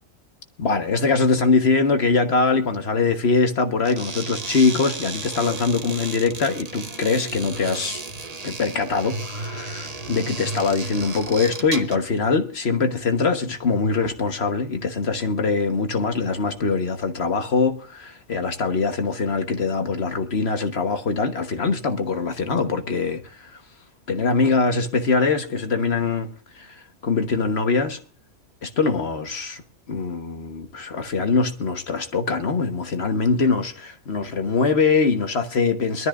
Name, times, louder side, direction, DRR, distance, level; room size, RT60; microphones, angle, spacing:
voice 1, 0.6-8.0 8.4-23.5 24.1-26.3 26.5-28.0 28.6-29.6 29.9-36.1, left 4 dB, 60° left, 1.5 m, -23 dB
sound 1, 3.8-12.1, right 3 dB, 35° right, 1.1 m, -34 dB
22.5 x 13.0 x 2.5 m
omnidirectional pair, 1.3 m